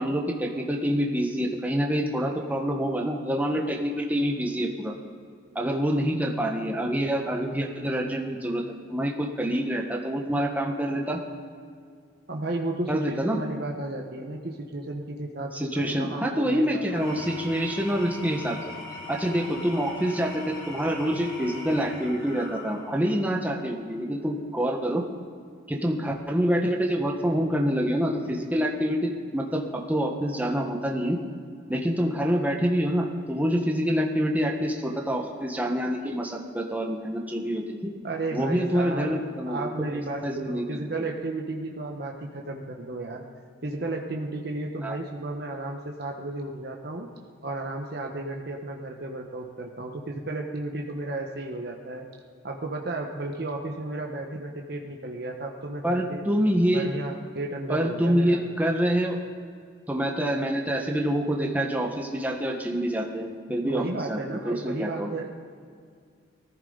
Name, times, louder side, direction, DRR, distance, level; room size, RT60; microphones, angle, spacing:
voice 1, 0.0-4.9 5.5-8.6 8.9-11.2 12.9-13.4 15.5-18.6 19.1-25.0 25.7-31.2 31.7-37.9 38.3-39.9 40.2-40.6 44.8-45.0 55.8-56.9 57.7-59.2 59.9-65.1, equal, 10° right, 0 dB, 1.3 m, -26 dB
voice 2, 12.3-16.9 38.0-43.2 43.6-47.1 47.4-52.0 52.4-56.3 56.7-58.5 63.7-65.4, right 2 dB, 55° right, 1 dB, 1.2 m, -33 dB
Engine / Tools, 16.8-23.2, left 2 dB, 80° left, 3.5 m, -41 dB
20.0 x 14.5 x 4.0 m, 2.2 s
head